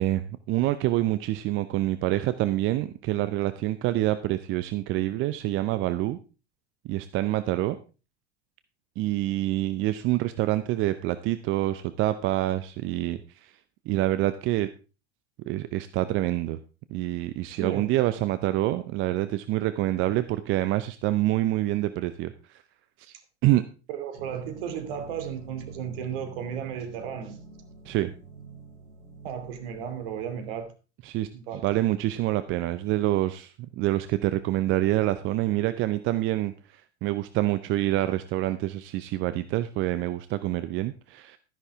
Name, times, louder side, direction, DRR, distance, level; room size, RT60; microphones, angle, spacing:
voice 1, 0.0-6.2 6.8-7.8 9.0-13.5 13.9-14.7 15.5-16.6 16.9-22.6 23.0-23.1 23.4-23.6 27.9-28.1 31.0-31.3 31.6-41.4, right 15 dB, 35° right, 12 dB, 0.7 m, -26 dB
voice 2, 17.5-17.9 23.9-27.4 29.2-30.7 31.3-31.7, right 8 dB, 60° right, 8 dB, 2.6 m, -34 dB
sound 1, 24.2-30.6, right 4 dB, 75° right, 2.5 m, -46 dB
12.5 x 10.5 x 3.6 m, 0.33 s
figure-of-eight pair, 85°, 34 cm